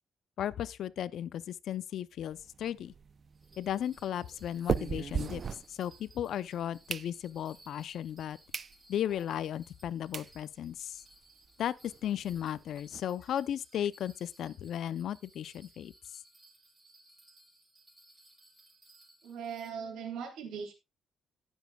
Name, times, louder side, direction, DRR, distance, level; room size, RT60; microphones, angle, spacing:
voice 1, 0.4-2.9 3.6-5.4 5.7-8.4 8.9-11.0 11.6-15.9, left 10 dB, 70° left, 0.6 m, -35 dB
sound 1, 2.3-6.2 6.6-7.6 8.1-8.2 8.5-8.7 9.2-9.3 9.8-9.9 10.1-10.3 10.8-10.9 11.0-11.2 11.4-11.5 11.9-13.0, right 6 dB, 45° right, 0.5 m, -38 dB
Bell, 3.3-19.7, right 1 dB, 20° right, 5.1 m, -61 dB
voice 2, 19.2-20.7, right 7 dB, 80° right, 3.2 m, -39 dB
17.5 x 7.3 x 2.3 m
cardioid pair, 90°, 0 cm